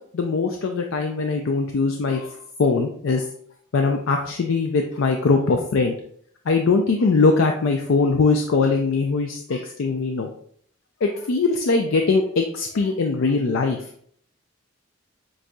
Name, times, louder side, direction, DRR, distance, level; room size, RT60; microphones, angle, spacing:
voice 1, 0.1-3.3 3.7-6.0 6.5-10.3 11.0-13.8, left 4 dB, 85° left, 3 dB, 0.4 m, -21 dB
7.6 x 2.7 x 2.3 m, 0.63 s
head